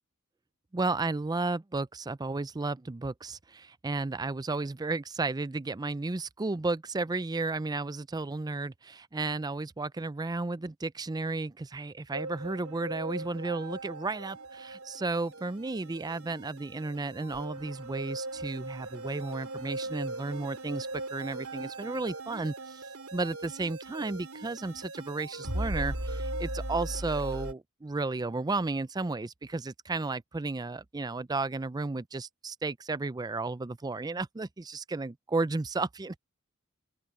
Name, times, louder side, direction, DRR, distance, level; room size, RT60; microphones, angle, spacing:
voice 1, 0.7-22.8 23.1-36.2, right 3 dB, 20° right, 0.4 m, -33 dB
sound 1, 12.1-27.5, right 2 dB, 70° right, 4.9 m, -39 dB
open air
head